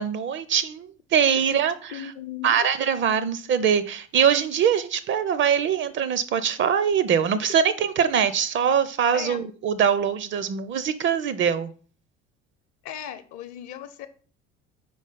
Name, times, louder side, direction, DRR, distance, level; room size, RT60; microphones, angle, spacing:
voice 1, 0.0-2.0 2.4-11.7, right 8 dB, 35° right, 0.5 m, -23 dB
voice 2, 1.9-2.6 9.1-9.4 12.8-14.1, left 10 dB, 50° left, 0.8 m, -37 dB
5.0 x 3.9 x 5.4 m
figure-of-eight pair, 60°, 36 cm